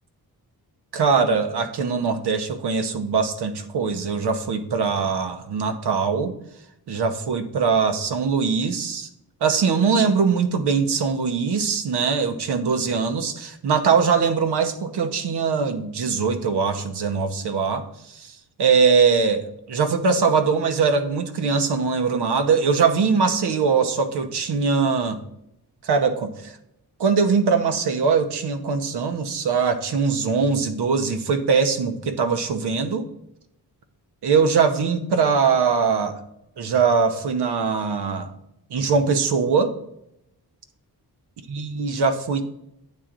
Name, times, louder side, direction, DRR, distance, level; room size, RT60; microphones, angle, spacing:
voice 1, 0.9-6.4 6.9-9.1 9.4-25.2 25.8-26.6 27.0-33.1 34.2-36.2 36.6-38.3 38.7-39.8 41.5-42.4, right 5 dB, 85° right, 8 dB, 1.0 m, -22 dB
8.7 x 3.8 x 6.0 m, 0.80 s
wide cardioid pair, 160°, 39 cm